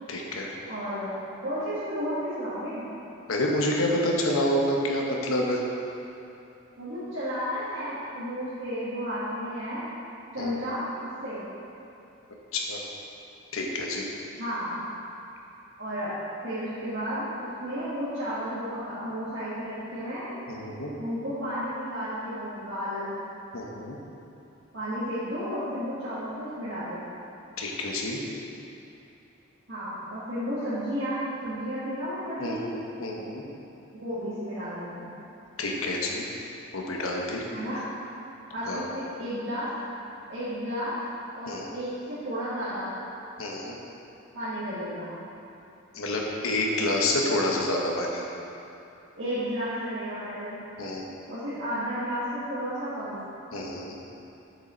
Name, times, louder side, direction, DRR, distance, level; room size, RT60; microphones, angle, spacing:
voice 1, 0.1-0.5 3.3-5.6 10.4-10.5 12.5-12.8 13.5-14.1 20.5-20.9 23.5-24.0 27.6-28.2 32.4-33.4 35.6-36.3 36.7-37.4 38.7-38.9 41.5-41.7 43.4-43.8 45.9-48.3 50.8-51.0 53.5-54.0, left 1 dB, 80° left, -1 dB, 1.1 m, -28 dB
voice 2, 0.7-2.8 6.8-9.9 10.3-10.9 11.2-11.4 14.4-14.8 15.8-16.1 16.4-17.3 17.6-20.3 21.0-23.1 24.7-27.0 29.7-32.7 33.9-35.1 37.5-37.8 38.5-39.7 40.3-40.9 41.3-42.9 44.3-45.1 49.2-50.6 51.3-53.2, equal, 60° right, -14 dB, 1.9 m, -32 dB
7.2 x 6.6 x 4.4 m, 2.8 s
head